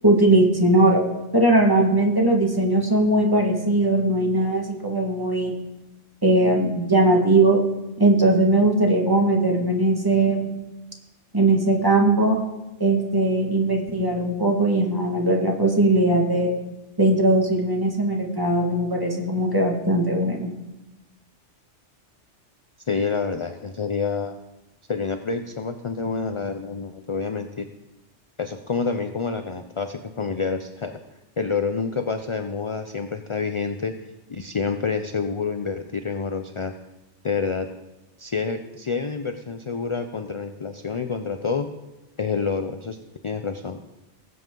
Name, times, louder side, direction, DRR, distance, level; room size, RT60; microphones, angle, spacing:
voice 1, 0.0-1.0 1.3-5.5 6.2-7.6 8.0-10.5 11.3-12.4 12.8-16.5 17.0-20.6, right 2 dB, 20° right, 0 dB, 1.8 m, -19 dB
voice 2, 22.9-24.4 24.9-27.7 28.4-31.0 31.4-33.9 34.3-36.7 37.2-37.7 38.2-41.7 42.2-43.0 43.2-43.8, left 5 dB, 45° left, 7 dB, 0.4 m, -28 dB
19.0 x 7.8 x 3.8 m, 0.99 s
omnidirectional pair, 1.2 m